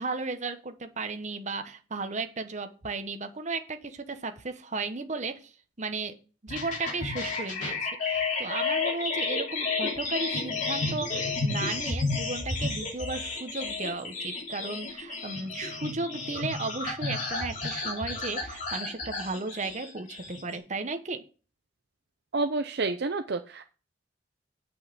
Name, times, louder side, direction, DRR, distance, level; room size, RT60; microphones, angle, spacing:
voice 1, 0.0-5.5 5.8-6.1 6.4-21.2, right 3 dB, 40° right, 7 dB, 1.1 m, -35 dB
sound 1, 6.5-20.6, left 3 dB, 45° left, 2.9 m, -32 dB
voice 2, 22.3-23.6, right 3 dB, 65° right, 7 dB, 0.6 m, -29 dB
8.5 x 5.6 x 6.8 m, 0.36 s
head